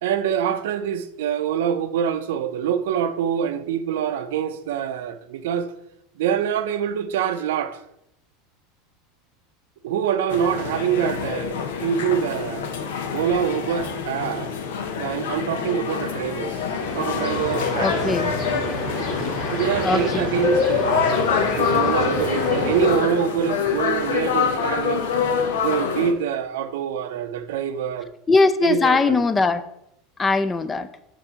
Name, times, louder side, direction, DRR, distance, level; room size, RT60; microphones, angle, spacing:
voice 1, 0.0-5.7 6.2-7.8 9.8-12.7 13.1-14.5 15.0-16.7 16.9-18.3 19.5-21.1 21.6-25.1 25.6-28.1 28.6-29.2, right 8 dB, 80° right, 0.5 m, -25 dB
sound 1, 10.3-26.1, left 6 dB, 85° left, 0.7 m, -26 dB
sound 2, 16.5-22.9, left 3 dB, 70° left, 1.7 m, -27 dB
voice 2, 17.8-18.4 19.8-20.5 28.3-29.6 30.2-30.9, left 3 dB, 20° left, 0.4 m, -20 dB
6.9 x 2.6 x 5.5 m
supercardioid pair, 120°, 0 cm